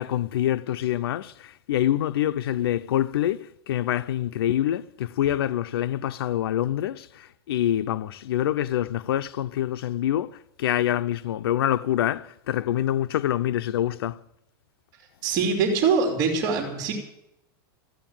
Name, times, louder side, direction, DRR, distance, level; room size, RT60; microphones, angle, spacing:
voice 1, 0.0-14.2, left 12 dB, 85° left, 0.6 m, -26 dB
voice 2, 15.2-16.9, right 5 dB, 30° right, 2.8 m, -23 dB
14.0 x 9.3 x 8.9 m
supercardioid pair, 160°, 12 cm